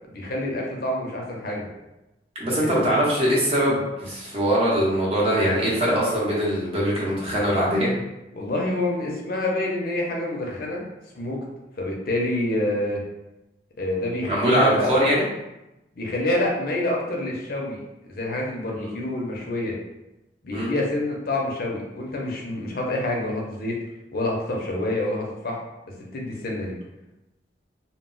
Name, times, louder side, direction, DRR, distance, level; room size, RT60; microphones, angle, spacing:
voice 1, 0.1-1.7 2.6-2.8 8.3-10.8 11.2-11.4 11.8-13.0 13.8-15.0 16.0-17.8 18.1-19.7 20.4-23.8 24.1-25.6 26.1-26.7, left 1 dB, 55° left, -2 dB, 0.5 m, -27 dB
voice 2, 2.4-7.9 14.2-15.2 18.8-18.9 20.5-20.7, equal, 35° right, -6 dB, 0.7 m, -22 dB
2.0 x 2.0 x 3.7 m, 0.95 s
head